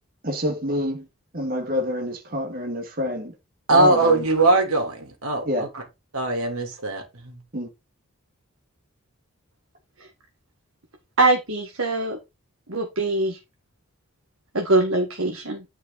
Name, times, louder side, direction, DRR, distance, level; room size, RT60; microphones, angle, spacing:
voice 1, 0.2-1.1 1.3-3.3 3.7-4.2 5.4-5.7 7.5-7.7, equal, 40° right, 2.3 m, -27 dB
voice 2, 3.7-5.7 6.1-7.4, right 2 dB, 90° right, 3.2 m, -21 dB
voice 3, 11.2-12.2 12.7-13.4 14.5-15.6, right 2 dB, 70° right, 1.9 m, -22 dB
10.5 x 5.7 x 4.1 m
head